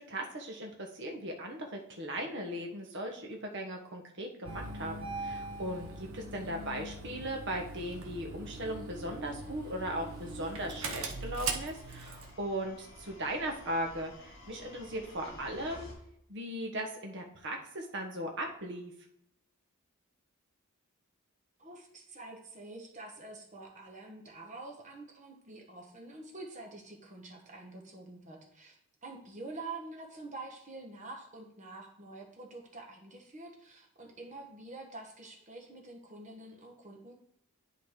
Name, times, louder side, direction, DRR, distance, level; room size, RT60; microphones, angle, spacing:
voice 1, 0.0-15.9 16.3-18.9, right 1 dB, 55° right, 2 dB, 1.3 m, -38 dB
Engine starting, 4.4-12.3, right 3 dB, 70° right, 1.0 m, -41 dB
sound 1, 7.1-15.9, left 1 dB, 55° left, 2.2 m, -54 dB
voice 2, 21.6-37.1, right 2 dB, 35° right, 1 dB, 1.3 m, -47 dB
10.5 x 4.1 x 3.8 m, 0.77 s
head